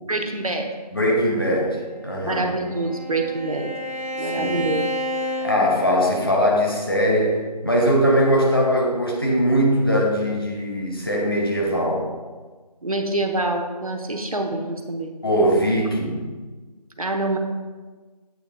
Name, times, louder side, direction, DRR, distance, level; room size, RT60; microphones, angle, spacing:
voice 1, 0.1-0.7 2.3-3.7 4.2-4.9 12.8-15.1 17.0-17.4, right 2 dB, 55° right, 3 dB, 0.8 m, -26 dB
voice 2, 0.9-2.5 4.2-4.6 5.4-12.1 15.2-16.3, equal, 35° left, -2 dB, 1.1 m, -21 dB
Bowed string instrument, 1.9-6.4, left 1 dB, 20° right, 0.8 m, -31 dB
8.3 x 3.3 x 5.1 m, 1.3 s
figure-of-eight pair, 170°, 21 cm